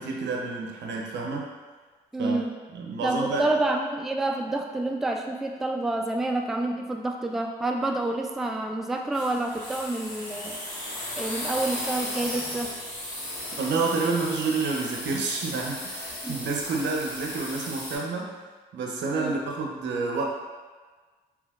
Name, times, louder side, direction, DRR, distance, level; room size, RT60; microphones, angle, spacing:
voice 1, 0.0-1.5 2.2-2.4 2.7-3.5 13.6-18.3 18.7-20.2, right 4 dB, 70° right, 0 dB, 0.6 m, -29 dB
voice 2, 2.1-2.5 3.0-10.6 11.2-12.7 16.2-16.4 19.2-19.4, right 2 dB, ahead, 3 dB, 0.3 m, -28 dB
sound 1, 9.1-18.0, left 1 dB, 85° left, 1.4 m, -35 dB
3.2 x 3.1 x 2.4 m, 1.4 s
supercardioid pair, 50°, 19 cm